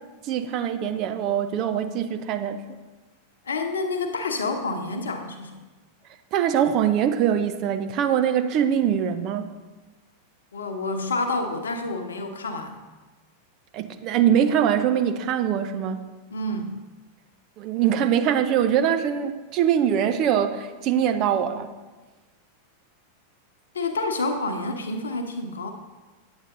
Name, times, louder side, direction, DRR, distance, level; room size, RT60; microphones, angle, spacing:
voice 1, 0.2-2.7 6.3-9.5 13.7-16.0 17.6-21.7, right 9 dB, 40° right, 9 dB, 0.6 m, -23 dB
voice 2, 3.5-5.6 10.5-12.7 16.3-16.7 23.7-25.7, left 2 dB, 70° left, 6 dB, 1.0 m, -28 dB
9.7 x 8.1 x 3.8 m, 1.2 s
figure-of-eight pair, 90°, 0 cm